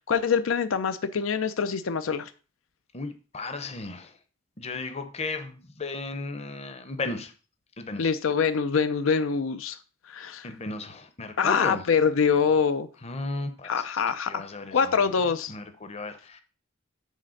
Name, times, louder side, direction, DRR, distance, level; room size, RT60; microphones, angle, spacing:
voice 1, 0.1-2.3 8.0-9.8 10.1-10.5 11.4-12.9 13.6-14.4 14.7-15.5, left 6 dB, 80° left, 12 dB, 0.5 m, -24 dB
voice 2, 2.9-4.1 4.6-7.3 7.8-8.1 10.4-11.8 13.0-13.7 14.2-15.1 15.5-16.4, left 3 dB, 30° left, 9 dB, 0.8 m, -35 dB
6.5 x 4.2 x 6.4 m, 0.37 s
head